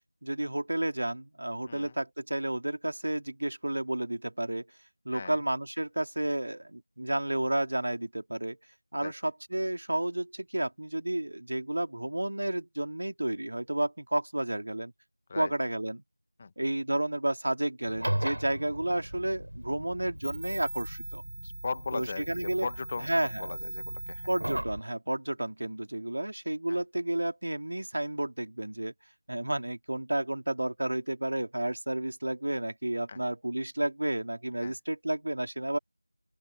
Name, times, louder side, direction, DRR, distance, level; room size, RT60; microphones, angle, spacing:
voice 1, 0.2-4.7 5.0-8.6 8.9-14.9 15.3-16.0 16.6-21.2 21.9-22.7 23.0-23.5 24.3-28.9 29.3-35.8, right 1 dB, 50° right, 3.0 m, -31 dB
sound 1, 17.9-24.8, right 1 dB, 80° right, 5.0 m, -37 dB
voice 2, 21.4-23.1 23.4-24.3 26.7-26.8 33.1-33.2 34.6-34.7, left 4 dB, 15° left, 1.2 m, -38 dB
open air
figure-of-eight pair, 175°, 0 cm